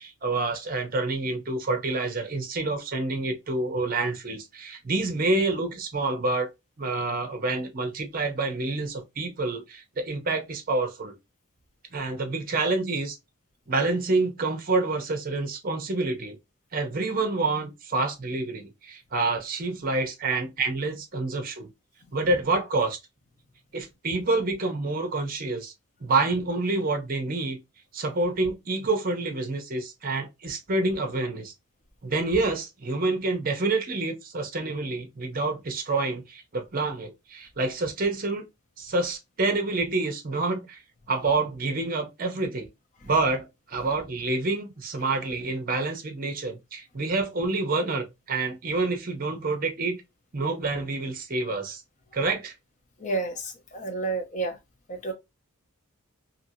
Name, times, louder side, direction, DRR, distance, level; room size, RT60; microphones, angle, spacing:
voice 1, 0.0-6.5 6.8-11.1 11.9-13.2 13.7-16.4 16.7-21.7 22.1-23.0 23.7-25.7 26.0-27.6 27.9-31.5 32.0-38.4 38.8-40.8 41.1-42.7 43.0-50.0 50.3-51.8 52.1-52.5, right 3 dB, 40° right, 0.7 m, -27 dB
voice 2, 53.0-54.6 54.9-55.1, right 3 dB, 35° left, 0.7 m, -30 dB
2.8 x 2.7 x 2.6 m
head